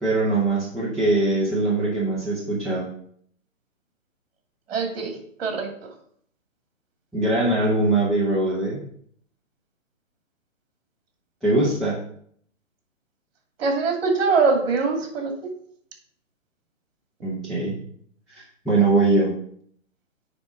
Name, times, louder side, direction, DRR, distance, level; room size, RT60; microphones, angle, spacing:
voice 1, 0.0-2.9 7.1-8.8 11.4-12.0 17.2-17.7 18.3-19.4, right 2 dB, ahead, -11 dB, 0.5 m, -22 dB
voice 2, 4.7-5.1 5.4-5.7 13.6-15.3, right 4 dB, 45° right, 3 dB, 2.5 m, -22 dB
9.2 x 3.7 x 5.1 m, 0.63 s
hypercardioid pair, 145°, 39 cm